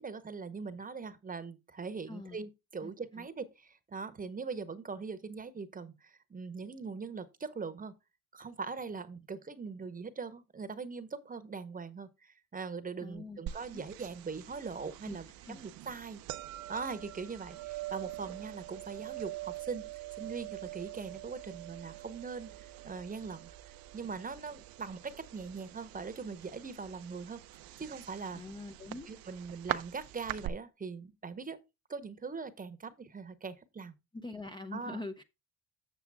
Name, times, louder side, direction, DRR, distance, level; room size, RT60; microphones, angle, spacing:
voice 1, 0.0-7.9 8.3-16.2 16.7-19.9 20.2-23.5 23.9-27.4 27.8-28.4 29.1-31.6 31.9-33.9 34.7-35.0, right 5 dB, 20° right, 0.9 m, -41 dB
voice 2, 2.1-2.4 2.8-3.3 13.0-13.4 13.7-13.8 15.0-15.2 15.4-15.6 28.3-29.1 34.1-35.2, left 2 dB, 15° left, 0.5 m, -43 dB
sound 1, 13.5-30.5, right 15 dB, 70° right, 0.6 m, -44 dB
7.4 x 7.0 x 3.5 m
cardioid pair, 100°, 37 cm